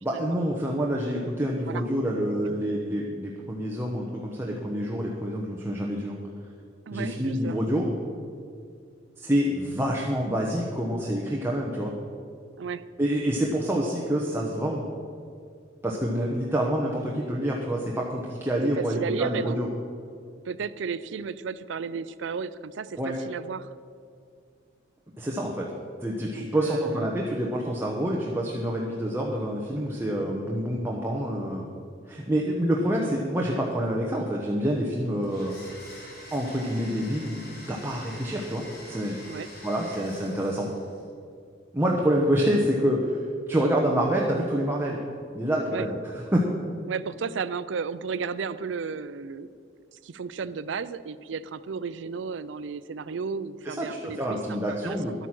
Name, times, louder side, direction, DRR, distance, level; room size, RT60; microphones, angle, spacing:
voice 1, 0.0-6.2 6.9-7.9 9.2-11.9 13.0-14.8 15.8-19.7 23.0-23.1 25.2-25.7 26.0-31.7 32.1-35.6 36.3-39.2 39.6-40.7 41.7-45.0 45.3-46.0 46.3-46.5 53.7-55.1, equal, 15° right, -2 dB, 1.0 m, -27 dB
voice 2, 6.9-7.6 12.6-12.8 18.6-19.6 20.4-23.7 26.3-27.1 39.3-39.5 45.7-45.9 46.9-49.7 49.9-54.4 54.7-55.0, right 5 dB, 75° right, 15 dB, 0.4 m, -33 dB
Domestic sounds home sounds, 35.2-41.1, left 1 dB, 55° left, 2.9 m, -45 dB
11.5 x 9.1 x 6.0 m, 2.3 s
head